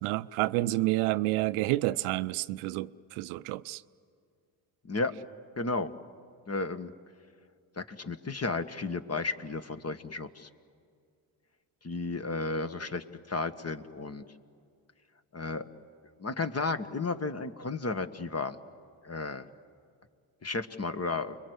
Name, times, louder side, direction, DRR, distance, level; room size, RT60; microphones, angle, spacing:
voice 1, 0.0-3.8, right 18 dB, 75° right, 0.6 m, -29 dB
voice 2, 5.6-5.9 6.5-6.9 7.8-10.5 11.8-14.2 15.3-15.6 16.2-18.6 19.0-19.5 20.4-21.4, left 3 dB, 30° left, 1.5 m, -33 dB
29.5 x 22.0 x 8.1 m
hypercardioid pair, 50°, 49 cm